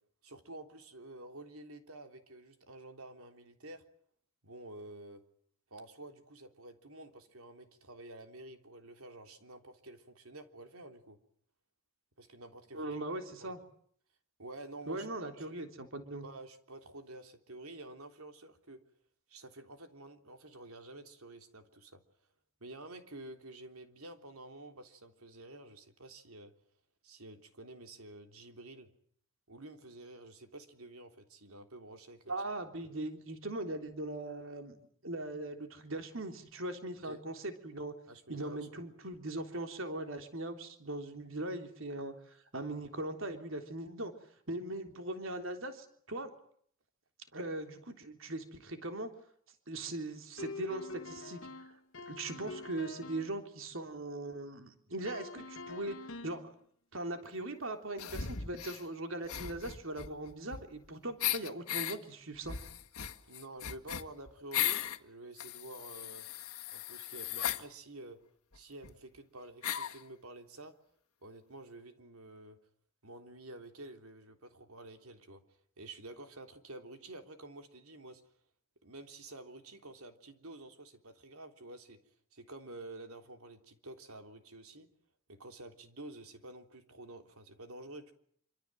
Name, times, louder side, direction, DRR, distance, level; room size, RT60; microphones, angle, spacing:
voice 1, 0.2-3.8 4.4-5.2 5.7-11.2 12.2-13.0 13.4-13.5 14.4-15.5 16.2-18.8 19.3-22.0 22.6-26.5 27.0-28.9 29.5-32.3 32.8-32.9 37.0-37.2 38.1-38.8 63.3-66.3 66.7-68.2 68.5-70.7 71.2-72.6 73.0-75.4 75.8-78.2 78.8-82.0 82.3-84.9 85.3-88.1, right 2 dB, 80° right, 6 dB, 3.5 m, -50 dB
voice 2, 12.7-13.6 14.9-16.2 32.3-34.8 35.0-37.9 38.3-44.1 44.5-46.3 47.3-49.1 49.7-51.8 52.1-56.5 56.9-62.6, right 2 dB, 65° right, 6 dB, 3.5 m, -40 dB
sound 1, 50.4-53.4 55.0-56.5, left 3 dB, 70° left, 1.7 m, -45 dB
sound 2, 58.0-58.8 59.2-60.9 61.2-62.0 62.4-65.0 65.4-67.6 68.5-68.6 68.8-68.9 69.6-70.0, left 10 dB, 85° left, 1.8 m, -37 dB
27.0 x 25.5 x 7.8 m, 0.63 s
head